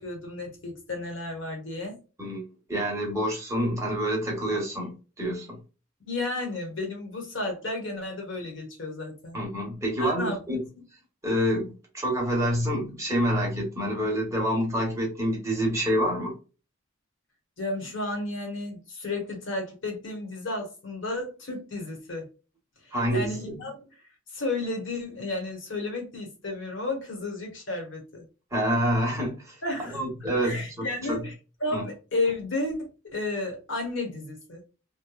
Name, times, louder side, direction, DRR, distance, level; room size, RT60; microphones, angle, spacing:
voice 1, 0.0-2.0 6.0-9.4 10.0-10.4 17.6-22.3 23.1-23.7 24.3-28.2 29.6-30.0 30.4-31.3 31.6-34.6, left 2 dB, 65° left, 1.1 m, -32 dB
voice 2, 2.2-5.6 9.3-10.6 11.2-16.4 22.9-23.6 28.5-30.7 31.0-31.2 31.7-31.8, equal, 15° right, 1.0 m, -27 dB
3.0 x 2.1 x 2.3 m
head